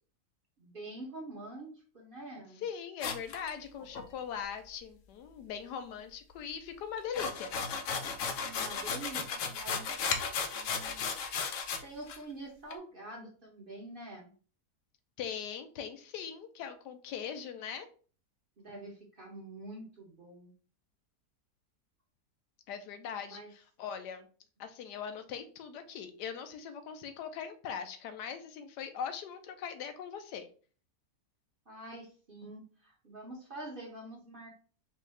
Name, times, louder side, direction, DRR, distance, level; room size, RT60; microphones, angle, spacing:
voice 1, 0.6-2.6 8.4-11.1 11.8-14.3 18.6-20.5 23.3-23.5 31.7-34.7, right 2 dB, 40° right, -1 dB, 0.9 m, -46 dB
voice 2, 2.6-7.5 15.2-17.9 22.7-24.3 24.6-30.5, left 7 dB, 85° left, 9 dB, 1.2 m, -41 dB
sound 1, 3.0-4.0 7.0-11.8 12.1-12.2 12.7-12.8, left 5 dB, 65° left, 0.8 m, -35 dB
4.5 x 2.6 x 3.2 m, 0.40 s
omnidirectional pair, 1.8 m